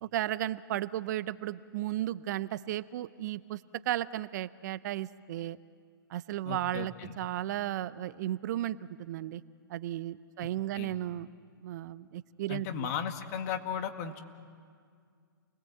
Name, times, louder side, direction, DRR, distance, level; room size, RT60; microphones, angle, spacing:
voice 1, 0.0-3.6 3.9-5.6 6.1-9.4 9.7-11.3 11.6-12.7, right 13 dB, 50° right, 16 dB, 0.7 m, -34 dB
voice 2, 6.4-7.2 10.4-10.5 10.7-10.9 12.5-14.2, left 8 dB, 45° left, 7 dB, 2.0 m, -36 dB
29.5 x 20.5 x 7.9 m, 2.1 s
hypercardioid pair, 130°, 12 cm